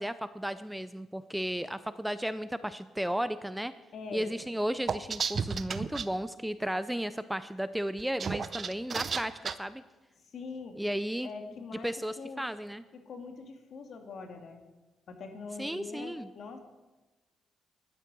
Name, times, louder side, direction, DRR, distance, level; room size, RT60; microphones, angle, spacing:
voice 1, 0.0-3.7 4.1-9.8 10.7-11.3 11.8-12.8 15.6-16.3, equal, 5° right, 13 dB, 0.5 m, -34 dB
voice 2, 3.9-4.3 10.3-10.8 11.2-11.9 12.2-12.4 12.9-14.6 15.1-16.6, left 4 dB, 60° left, 5 dB, 2.2 m, -43 dB
sound 1, 4.9-6.1 8.0-9.5, right 6 dB, 45° right, 0.7 m, -32 dB
12.0 x 11.0 x 6.1 m, 1.1 s
cardioid pair, 90°, 0 cm